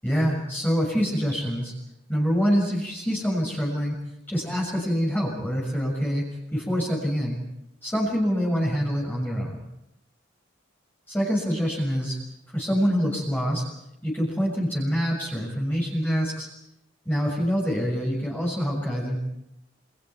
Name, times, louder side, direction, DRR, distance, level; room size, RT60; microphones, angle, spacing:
voice 1, 0.0-1.7 2.1-4.0 4.3-6.2 6.5-7.4 7.8-9.6 11.1-12.2 12.5-13.6 14.0-16.5 17.0-19.2, equal, 10° left, -4 dB, 6.6 m, -25 dB
29.0 x 27.5 x 4.7 m, 0.83 s
head